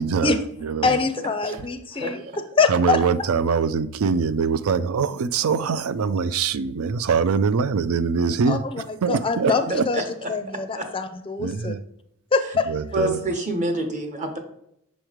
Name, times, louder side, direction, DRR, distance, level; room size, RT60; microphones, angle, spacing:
voice 1, 0.0-0.9 1.4-1.5 1.9-2.1 2.7-9.9 11.4-11.8 12.7-13.2, right 5 dB, 70° right, 0.4 m, -23 dB
voice 2, 0.8-2.2 2.6-3.0 8.5-8.6 9.1-10.0 10.3-11.7 12.3-12.7, left 4 dB, 25° left, 0.5 m, -23 dB
voice 3, 9.9-10.3 10.7-10.9 12.9-14.4, right 1 dB, 35° right, 1.0 m, -27 dB
6.3 x 3.1 x 5.0 m
head